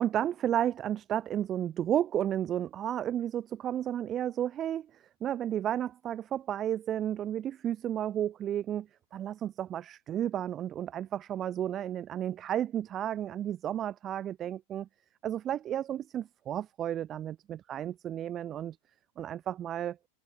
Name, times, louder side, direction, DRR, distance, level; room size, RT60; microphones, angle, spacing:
voice 1, 0.0-14.9 15.2-18.8 19.2-20.0, right 11 dB, 30° right, 0.9 m, -32 dB
figure-of-eight pair, 90°, 0 cm